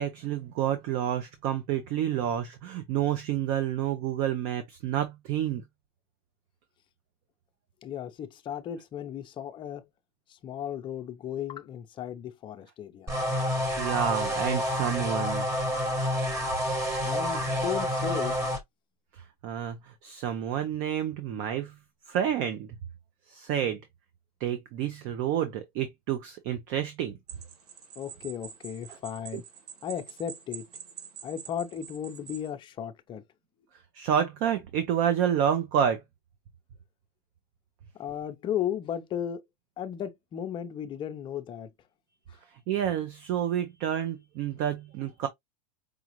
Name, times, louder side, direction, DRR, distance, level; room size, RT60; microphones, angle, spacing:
voice 1, 0.0-5.6 13.8-15.5 19.1-21.7 22.1-22.7 23.3-23.8 24.4-27.2 28.9-29.0 29.3-29.4 33.9-36.0 42.7-45.3, right 9 dB, 45° right, 0.7 m, -29 dB
voice 2, 7.8-9.8 10.3-13.2 17.0-18.4 28.0-29.4 29.8-30.7 31.2-33.2 38.0-39.4 39.8-41.7, left 9 dB, 25° left, 0.6 m, -35 dB
sound 1, 13.1-18.6, equal, 15° right, 1.3 m, -28 dB
sound 2, 27.3-32.5, right 7 dB, 80° right, 1.7 m, -46 dB
5.0 x 2.4 x 3.0 m
supercardioid pair, 140°, 20 cm